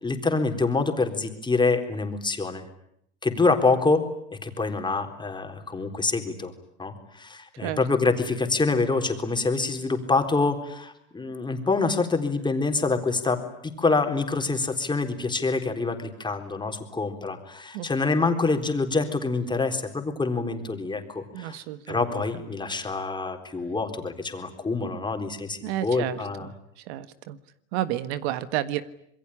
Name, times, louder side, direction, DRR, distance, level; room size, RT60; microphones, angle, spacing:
voice 1, 0.0-2.6 3.2-4.0 4.3-6.5 6.8-13.4 13.8-26.5, left 3 dB, 15° left, 5 dB, 4.0 m, -26 dB
voice 2, 17.7-18.1 21.3-22.2 25.6-27.4 27.7-28.8, right 13 dB, 65° right, 13 dB, 1.6 m, -31 dB
27.0 x 22.0 x 10.0 m, 0.74 s
supercardioid pair, 110°, 35 cm